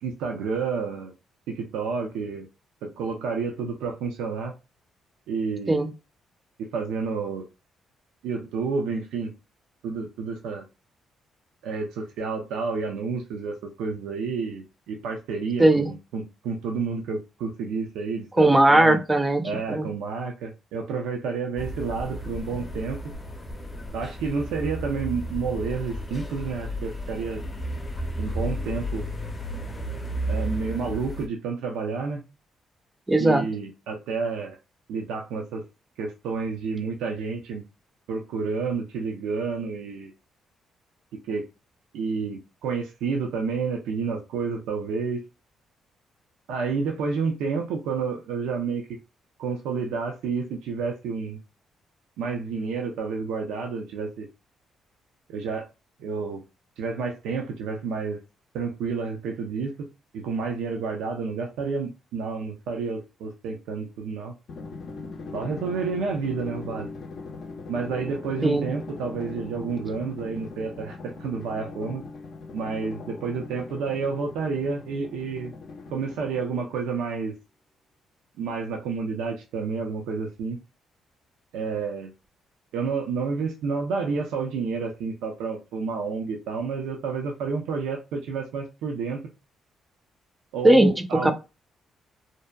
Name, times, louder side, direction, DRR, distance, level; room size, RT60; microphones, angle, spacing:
voice 1, 0.0-1.1 1.5-2.5 2.8-4.5 5.3-5.9 6.6-7.5 8.2-9.3 9.8-10.6 11.6-19.0 19.4-23.0 23.9-27.4 28.2-29.1 30.3-32.2 33.2-34.6 34.9-35.6 36.0-37.6 38.1-40.1 41.3-41.4 41.9-45.2 46.5-49.0 49.4-51.4 52.2-54.3 55.3-55.7 56.0-56.4 56.8-58.2 58.5-59.9 60.1-64.3 65.3-66.9 67.7-72.0 72.5-75.5 75.9-77.3 78.4-80.6 81.5-82.1 82.7-89.2 90.5-91.3, right 5 dB, 90° right, 0.4 m, -30 dB
voice 2, 18.4-19.4 19.7-19.9 33.1-33.4 68.4-68.7 90.6-90.9 91.2-91.3, right 1 dB, 15° right, 0.5 m, -18 dB
sound 1, 21.6-31.3, equal, 25° left, 0.7 m, -33 dB
Drum, 64.5-76.9, left 3 dB, 60° left, 0.5 m, -40 dB
2.6 x 2.1 x 2.2 m
cardioid pair, 90°, 0 cm